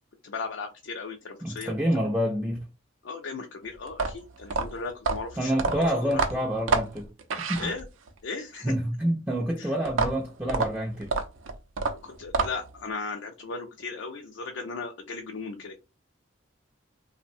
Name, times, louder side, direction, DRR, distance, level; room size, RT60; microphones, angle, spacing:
voice 1, 0.2-1.7 3.0-6.2 7.6-7.8 8.2-8.7 9.6-9.7 12.0-15.8, left 4 dB, 75° left, 0.5 m, -36 dB
voice 2, 1.4-2.6 5.4-7.1 7.5-7.7 8.6-11.1, equal, 10° right, 0.3 m, -27 dB
sound 1, 3.9-8.2 9.8-12.8, right 4 dB, 85° right, 0.5 m, -28 dB
3.2 x 2.0 x 2.6 m
head